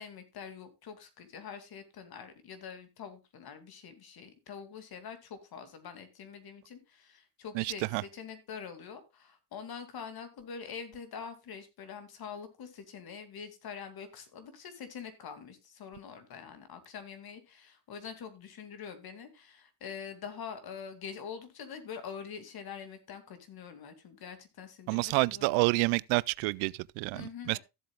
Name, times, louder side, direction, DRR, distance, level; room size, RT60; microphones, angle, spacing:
voice 1, 0.0-25.6 27.1-27.6, left 7 dB, 50° left, 2.5 m, -45 dB
voice 2, 7.5-8.0 24.9-27.6, right 26 dB, 80° right, 0.5 m, -29 dB
15.0 x 7.7 x 2.3 m
supercardioid pair, 95°, 47 cm